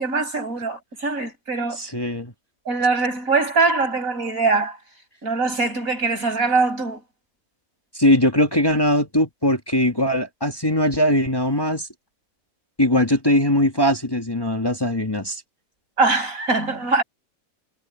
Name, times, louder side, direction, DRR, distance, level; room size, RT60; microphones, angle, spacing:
voice 1, 0.0-1.8 2.7-4.8 5.2-7.0 16.0-17.0, right 3 dB, 70° right, 7.0 m, -22 dB
voice 2, 1.8-2.3 7.9-11.9 12.8-15.4, left 1 dB, 15° left, 1.9 m, -20 dB
omnidirectional pair, 1.5 m